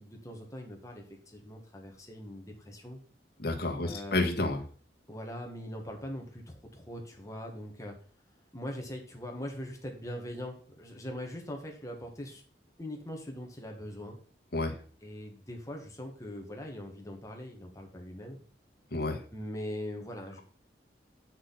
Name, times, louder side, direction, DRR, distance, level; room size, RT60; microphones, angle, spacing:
voice 1, 0.0-3.0 3.8-4.3 5.1-7.9 8.5-12.4 12.8-14.2 15.0-18.4 19.3-20.4, equal, 20° left, 2 dB, 1.8 m, -41 dB
voice 2, 3.4-4.6 14.5-14.7 18.9-19.2, left 2 dB, 60° left, 2 dB, 1.6 m, -30 dB
8.3 x 6.3 x 4.1 m, 0.43 s
head